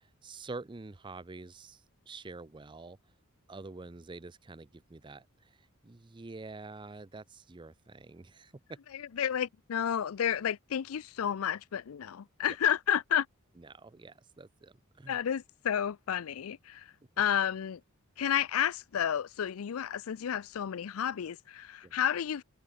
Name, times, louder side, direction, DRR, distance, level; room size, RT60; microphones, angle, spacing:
voice 1, 0.0-3.0 3.5-8.8 12.5-12.6 13.6-15.2 21.8-22.0, right 3 dB, 20° right, 0.5 m, -47 dB
voice 2, 9.2-13.3 15.1-17.8 18.2-22.4, left 9 dB, 85° left, 0.4 m, -31 dB
head